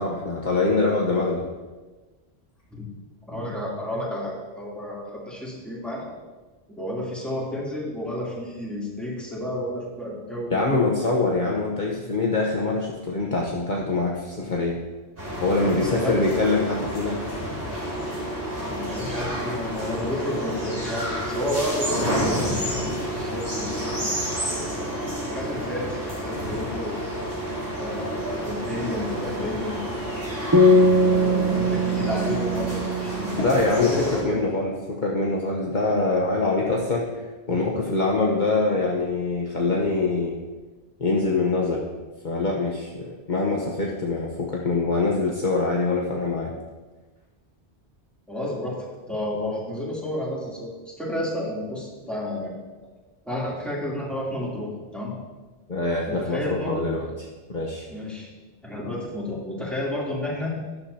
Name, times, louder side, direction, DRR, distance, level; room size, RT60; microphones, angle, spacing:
voice 1, 0.0-1.4 10.5-14.8 15.4-17.2 33.3-37.2 37.5-40.4 41.0-41.8 42.2-46.5 55.7-57.1 57.5-57.9, left 3 dB, 45° left, -3 dB, 1.2 m, -24 dB
voice 2, 3.3-6.1 6.8-10.8 15.6-16.3 18.7-24.0 24.8-27.1 27.8-29.8 30.6-34.4 37.5-37.6 48.3-52.6 53.2-55.1 56.1-56.9 57.9-58.3 58.6-60.5, left 1 dB, ahead, -6 dB, 3.1 m, -31 dB
sound 1, 15.2-34.2, equal, 55° right, 4.4 m, -30 dB
sound 2, 30.5-34.0, left 1 dB, 20° right, 0.5 m, -21 dB
12.5 x 11.0 x 2.8 m, 1.3 s
omnidirectional pair, 1.1 m